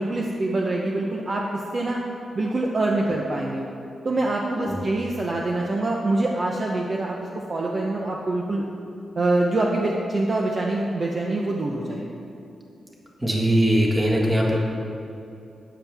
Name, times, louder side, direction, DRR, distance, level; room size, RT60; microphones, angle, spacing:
voice 1, 0.0-2.0 2.3-3.6 4.0-8.6 9.2-12.2, right 2 dB, 35° right, -1 dB, 0.7 m, -25 dB
voice 2, 13.2-14.6, equal, 10° right, -2 dB, 1.6 m, -20 dB
12.5 x 9.3 x 3.5 m, 2.7 s
wide cardioid pair, 165°, 0 cm